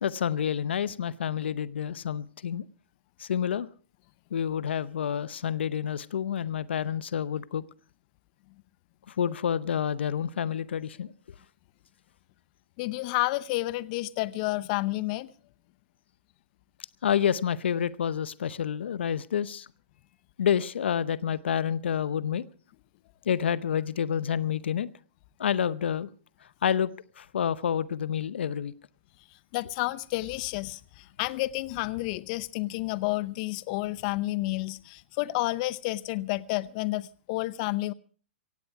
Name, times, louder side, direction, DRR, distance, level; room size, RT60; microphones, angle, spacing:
voice 1, 0.0-2.7 3.2-3.7 4.3-7.6 9.1-11.1 17.0-19.7 20.4-22.5 23.3-24.9 25.4-26.1 26.6-26.9 27.2-28.7, left 8 dB, 75° left, 0.7 m, -28 dB
voice 2, 12.8-15.3 29.5-37.9, left 19 dB, 45° left, 0.7 m, -30 dB
17.0 x 16.5 x 4.7 m
hypercardioid pair, 130°, 6 cm